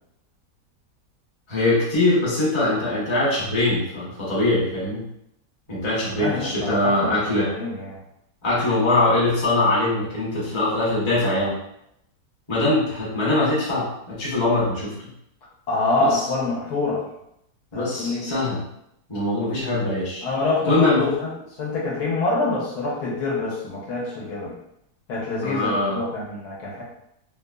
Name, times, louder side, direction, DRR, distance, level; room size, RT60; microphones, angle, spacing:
voice 1, 1.5-5.1 5.7-7.5 8.4-11.6 12.5-14.9 16.0-16.2 17.7-18.6 19.1-20.2 20.6-21.0 25.4-26.0, left 2 dB, 25° left, -8 dB, 0.7 m, -22 dB
voice 2, 6.1-8.0 15.7-17.0 17.7-18.3 20.2-21.3 21.6-24.5 25.1-26.8, left 3 dB, 70° left, -5 dB, 1.3 m, -25 dB
3.2 x 2.0 x 2.3 m, 0.77 s
omnidirectional pair, 1.8 m